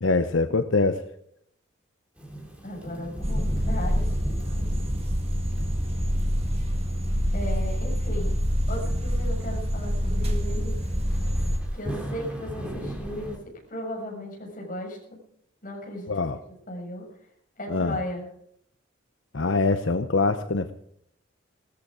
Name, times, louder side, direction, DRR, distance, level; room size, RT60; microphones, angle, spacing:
voice 1, 0.0-1.0 16.1-16.4 17.7-18.0 19.3-20.7, left 3 dB, 80° left, 9 dB, 0.9 m, -24 dB
Thunderstorm / Rain, 2.2-13.4, right 1 dB, 5° right, 3.1 m, -40 dB
voice 2, 2.6-4.7 7.3-8.3 8.7-10.8 11.7-15.2 15.6-16.1 16.7-17.1 17.6-18.3, left 1 dB, 45° left, -1 dB, 6.8 m, -36 dB
sound 1, 3.2-11.6, equal, 30° right, 2.0 m, -26 dB
18.0 x 14.0 x 4.9 m, 0.69 s
head